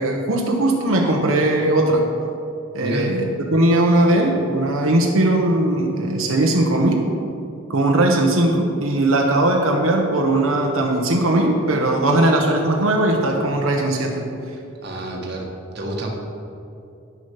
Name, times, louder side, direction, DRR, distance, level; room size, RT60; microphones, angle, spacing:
voice 1, 0.0-2.1 2.7-7.0 7.7-14.3, right 1 dB, 90° right, 1 dB, 1.1 m, -19 dB
voice 2, 14.8-15.5 15.7-16.1, right 1 dB, 50° right, -1 dB, 1.5 m, -28 dB
10.0 x 6.6 x 5.8 m, 2.7 s
head